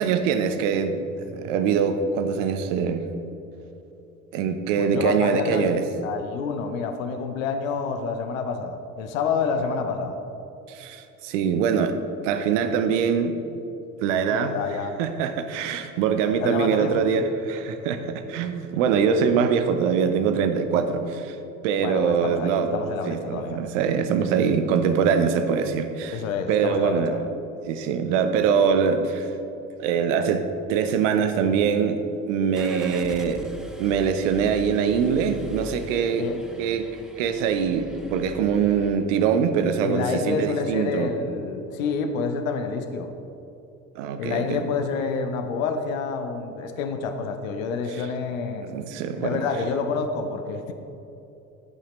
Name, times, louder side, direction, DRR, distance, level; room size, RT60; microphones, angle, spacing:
voice 1, 0.0-3.0 4.3-5.8 10.7-12.0 12.2-13.4 14.0-14.5 15.0-21.4 21.6-26.2 26.5-27.2 27.7-29.3 29.8-33.4 33.8-36.3 36.6-36.9 37.2-41.1 44.0-44.6 48.6-49.4, right 6 dB, 65° right, 9 dB, 0.8 m, -23 dB
voice 2, 4.8-10.2 14.3-15.0 16.4-17.3 21.8-23.6 26.1-27.2 36.2-36.4 39.8-43.1 44.2-48.7 49.2-50.7, left 5 dB, 70° left, 7 dB, 0.8 m, -28 dB
Car / Engine starting, 32.5-39.0, right 1 dB, ahead, 0.6 m, -42 dB
15.5 x 5.7 x 3.1 m, 2.9 s
figure-of-eight pair, 60°, 41 cm